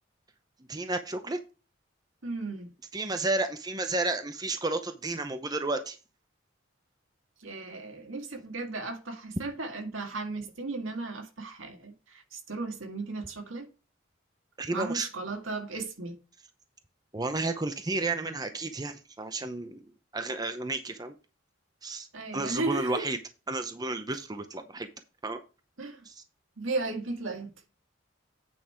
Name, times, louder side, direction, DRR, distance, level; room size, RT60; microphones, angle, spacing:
voice 1, 0.7-1.4 2.9-6.0 14.6-15.1 17.1-19.8 20.1-21.1 21.8-22.1 22.3-23.2 23.5-24.9 25.2-25.4 26.1-26.2, right 2 dB, 20° right, 0.7 m, -32 dB
voice 2, 2.2-2.7 7.4-13.7 14.7-16.2 22.1-23.0 25.8-26.1 26.6-27.5, right 3 dB, 80° right, 1.9 m, -35 dB
8.8 x 5.4 x 4.5 m
head